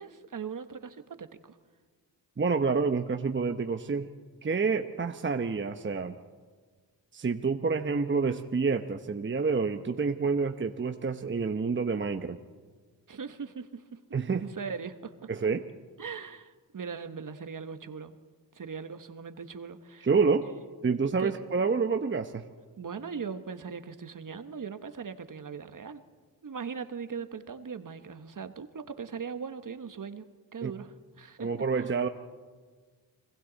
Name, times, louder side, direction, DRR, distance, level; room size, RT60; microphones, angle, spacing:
voice 1, 0.0-1.6 13.1-14.0 14.3-15.3 16.0-18.1 18.5-20.1 20.4-20.5 21.2-21.3 22.8-26.0 26.4-30.3 30.5-31.5, right 6 dB, 45° right, 9 dB, 1.4 m, -39 dB
voice 2, 2.4-4.1 4.4-6.1 7.1-12.4 14.1-14.4 15.3-15.6 20.0-20.5 20.8-22.4 30.6-30.7 31.4-32.1, right 4 dB, 25° right, 7 dB, 1.0 m, -28 dB
29.5 x 22.0 x 4.1 m, 1.5 s
supercardioid pair, 50°, 46 cm